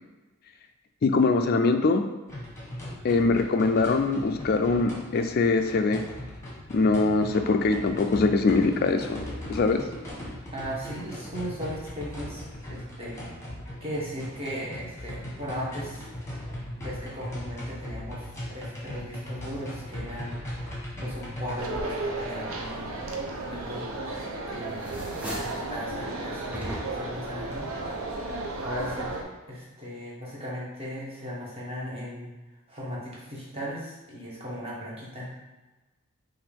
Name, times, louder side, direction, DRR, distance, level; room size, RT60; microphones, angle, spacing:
voice 1, 1.0-2.0 3.0-6.0 6.7-9.2 9.5-9.8, left 3 dB, 45° left, 7 dB, 0.3 m, -23 dB
sound 1, 2.3-21.5, left 1 dB, 10° left, 1.1 m, -38 dB
voice 2, 10.5-12.4 12.7-13.3 13.8-16.1 16.8-20.4 20.6-23.0 23.4-23.8 24.5-24.9 25.4-27.9 28.6-29.1 29.5-32.3 32.7-35.3, equal, 25° right, -7 dB, 1.3 m, -37 dB
sound 2, 21.6-29.2, right 2 dB, 65° right, 0.7 m, -34 dB
sound 3, 23.9-24.4 24.7-25.7 26.5-27.2, equal, 5° right, 0.6 m, -37 dB
5.8 x 2.6 x 3.4 m, 1.1 s
head